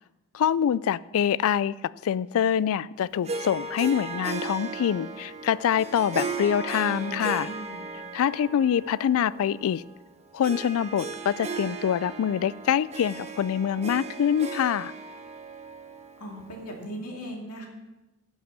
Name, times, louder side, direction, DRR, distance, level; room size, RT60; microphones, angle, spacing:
voice 1, 0.3-1.8 2.0-7.5 8.1-9.8 10.3-14.9, left 9 dB, 65° left, 20 dB, 0.3 m, -25 dB
Harp, 3.2-16.9, right 4 dB, 30° right, 1.0 m, -37 dB
voice 2, 6.8-7.8 16.2-17.7, equal, 80° left, 1 dB, 2.4 m, -39 dB
11.0 x 6.1 x 7.2 m, 1.0 s
head